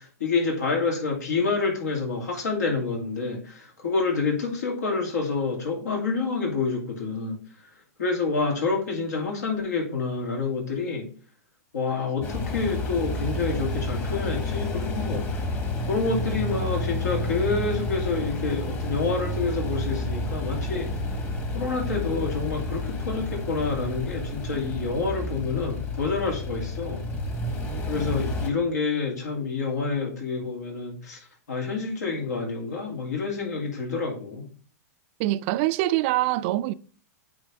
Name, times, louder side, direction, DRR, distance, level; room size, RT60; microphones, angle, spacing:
voice 1, 0.0-7.4 8.0-11.1 11.7-15.3 15.9-20.9 21.5-27.0 27.9-31.2 31.5-34.4, left 4 dB, 80° left, 2.3 m, -28 dB
sound 1, 12.2-28.5, left 1 dB, 25° left, 1.3 m, -30 dB
voice 2, 35.2-36.7, right 16 dB, 45° right, 0.3 m, -24 dB
8.7 x 3.5 x 3.4 m
hypercardioid pair, 115°, 9 cm